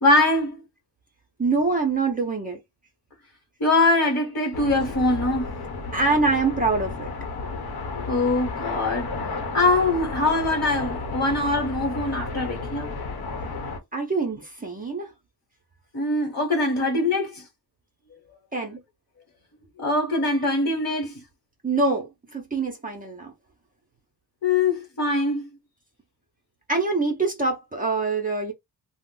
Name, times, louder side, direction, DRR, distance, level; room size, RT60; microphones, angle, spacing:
voice 1, 0.0-0.6 3.6-5.5 8.1-9.1 9.5-12.9 15.9-17.4 19.8-21.2 24.4-25.5, left 2 dB, 40° left, 1.1 m, -23 dB
voice 2, 1.4-2.6 5.9-7.1 13.9-15.1 18.5-18.8 21.6-23.3 26.7-28.5, right 3 dB, 20° right, 0.6 m, -24 dB
sound 1, 4.5-13.8, left 3 dB, 70° left, 0.9 m, -32 dB
2.5 x 2.0 x 3.7 m
wide cardioid pair, 150°, 39 cm